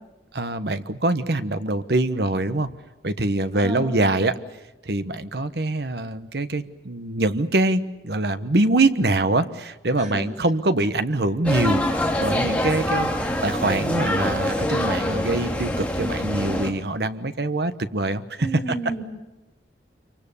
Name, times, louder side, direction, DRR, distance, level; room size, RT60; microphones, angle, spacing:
voice 1, 0.3-2.7 3.0-4.3 4.8-11.8 12.2-13.1 13.4-18.5, right 2 dB, 65° right, 11 dB, 1.1 m, -24 dB
voice 2, 3.5-4.2 10.0-10.2 18.4-19.0, right 2 dB, 45° right, 3 dB, 5.3 m, -31 dB
sound 1, 11.4-16.7, left 1 dB, 10° left, 2.1 m, -25 dB
26.5 x 24.0 x 7.0 m, 1.0 s
head